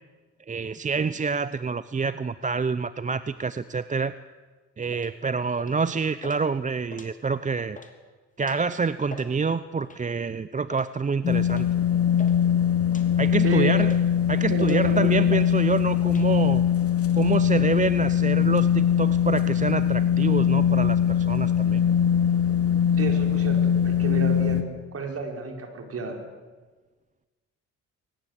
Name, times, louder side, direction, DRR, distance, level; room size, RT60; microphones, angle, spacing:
voice 1, 0.5-4.1 4.8-7.8 8.4-11.7 13.2-14.0 14.3-16.6 17.1-21.8, right 5 dB, 25° right, 14 dB, 0.7 m, -27 dB
sound 1, 4.9-5.1 5.6-5.9 6.2-6.4 6.8-7.4 7.7-7.9 8.4-8.7 9.0-9.3 9.8-10.1 10.7-10.9 11.5-11.7 11.9-12.4 12.9-13.1 13.5-14.1 14.6-14.9 15.3-15.5 15.7-16.3, left 3 dB, 25° left, 3.2 m, -43 dB
sound 2, 11.2-24.6, left 9 dB, 50° left, 2.6 m, -22 dB
voice 2, 13.4-14.0 14.5-15.2 23.0-24.7 24.9-26.2, right 4 dB, 50° right, 4 dB, 5.1 m, -31 dB
23.0 x 19.5 x 8.2 m, 1.3 s
cardioid pair, 90°, 30 cm